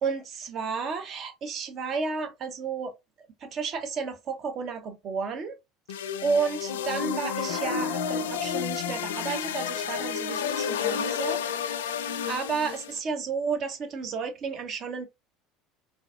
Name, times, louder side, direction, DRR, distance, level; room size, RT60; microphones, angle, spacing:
voice 1, 0.0-2.9 3.4-5.6 6.2-11.9 12.3-15.1, right 5 dB, 50° right, 1.0 m, -32 dB
sound 1, 5.9-13.0, left 7 dB, 85° left, 0.4 m, -31 dB
3.9 x 2.6 x 2.4 m
hypercardioid pair, 85°, 0 cm